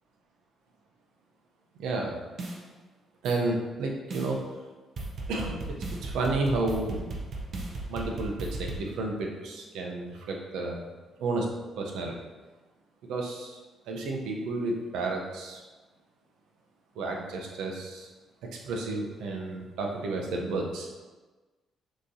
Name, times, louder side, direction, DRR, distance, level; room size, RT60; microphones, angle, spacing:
voice 1, 1.8-2.2 3.2-4.4 5.3-7.1 7.9-10.8 11.2-11.5 11.8-12.2 13.1-13.6 13.9-15.6 17.0-18.1 18.6-20.9, right 2 dB, 85° right, 1 dB, 0.8 m, -31 dB
sound 1, 2.4-2.6 3.3-3.4 4.1-4.3 5.0-8.8, right 2 dB, 55° right, 0.8 m, -36 dB
6.3 x 3.0 x 2.8 m, 1.2 s
cardioid pair, 90°, 0 cm